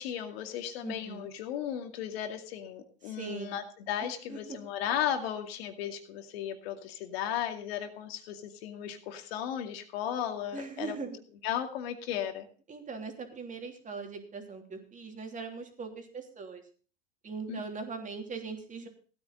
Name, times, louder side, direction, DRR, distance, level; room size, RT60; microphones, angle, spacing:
voice 1, 0.0-11.0 11.4-12.5 17.5-17.6, left 10 dB, 70° left, 5 dB, 2.3 m, -35 dB
voice 2, 0.8-1.3 3.0-3.6 4.3-4.4 10.5-11.2 12.7-16.6 17.2-18.9, right 4 dB, 25° right, 3 dB, 3.1 m, -40 dB
16.5 x 9.6 x 4.0 m, 0.39 s
hypercardioid pair, 105°, 31 cm